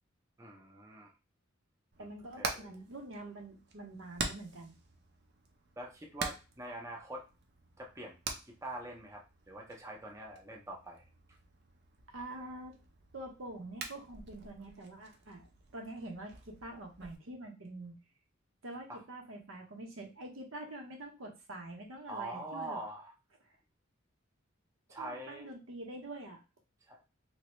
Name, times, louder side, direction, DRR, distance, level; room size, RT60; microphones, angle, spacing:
voice 1, 0.4-1.1 2.4-2.7 5.8-7.3 7.8-8.2 8.5-11.0 18.9-19.0 22.1-23.1 24.9-25.5 26.9-27.0, right 2 dB, 15° right, -1 dB, 0.6 m, -44 dB
Hammer, 1.9-17.2, right 4 dB, 55° right, 0.6 m, -46 dB
voice 2, 2.0-4.7 12.1-12.7 13.1-17.9 18.6-22.8 25.0-26.4, right 1 dB, 80° right, 1 dB, 0.9 m, -46 dB
2.9 x 2.7 x 3.1 m, 0.29 s
head